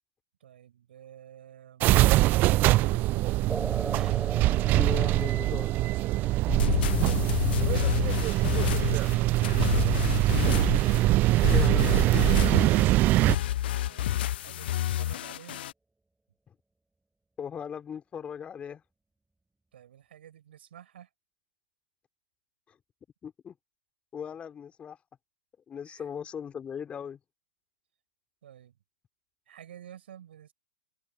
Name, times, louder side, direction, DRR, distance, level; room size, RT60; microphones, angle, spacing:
voice 1, 0.4-3.4 7.1-9.8 13.8-15.6 19.7-21.1 25.9-26.0 28.4-28.8 29.5-30.5, right 10 dB, 60° right, 6.4 m, -50 dB
sound 1, 1.8-13.4, right 18 dB, 30° right, 0.4 m, -23 dB
sound 2, 3.5-10.5, right 2 dB, 5° right, 2.4 m, -42 dB
voice 2, 4.8-5.7 11.4-12.4 16.5-16.6 17.4-18.8 22.7-22.8 23.2-23.5 24.1-25.0 25.7-27.2, left 7 dB, 20° left, 4.5 m, -38 dB
sound 3, 6.5-15.7, left 13 dB, 55° left, 0.5 m, -29 dB
figure-of-eight pair, 105°, 7 cm